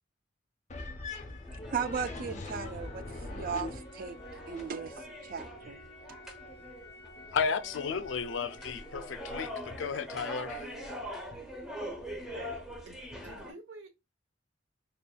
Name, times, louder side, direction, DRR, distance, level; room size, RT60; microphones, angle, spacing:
sound 1, 0.7-4.7, left 2 dB, 40° left, 0.6 m, -41 dB
sound 2, 1.4-13.5, equal, 5° right, 0.8 m, -44 dB
voice 1, 1.7-4.2 4.4-5.8, right 6 dB, 50° right, 0.4 m, -37 dB
sound 3, 2.8-9.7, left 1 dB, 20° left, 1.8 m, -52 dB
voice 2, 7.3-9.5 9.8-10.7, left 5 dB, 80° left, 0.4 m, -33 dB
voice 3, 12.3-14.0, right 2 dB, 80° right, 0.9 m, -50 dB
4.1 x 3.4 x 2.2 m
head